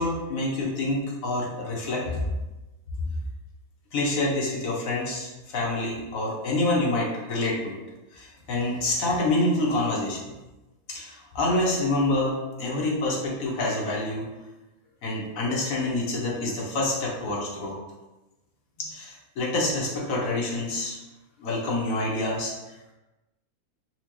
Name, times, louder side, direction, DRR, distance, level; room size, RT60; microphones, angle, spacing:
voice 1, 0.0-2.0 3.9-7.7 8.1-10.3 10.9-14.3 15.0-17.8 18.8-21.0 21.4-22.5, left 2 dB, 70° left, -2 dB, 1.2 m, -27 dB
4.4 x 2.1 x 2.9 m, 1.1 s
omnidirectional pair, 1.5 m